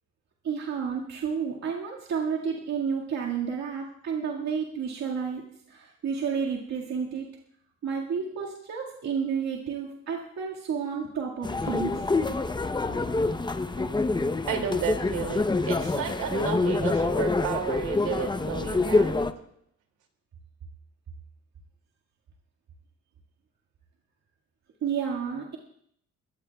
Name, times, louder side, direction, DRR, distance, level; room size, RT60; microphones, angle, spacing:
voice 1, 0.4-7.3 7.8-12.0 24.8-25.6, right 6 dB, 60° right, -3 dB, 2.0 m, -31 dB
sound 1, 11.4-19.3, left 3 dB, 15° left, 0.7 m, -26 dB
voice 2, 13.8-14.1 14.4-19.4, right 7 dB, 80° right, 4 dB, 2.5 m, -33 dB
22.0 x 15.5 x 2.3 m, 0.70 s
cardioid pair, 90°, 30 cm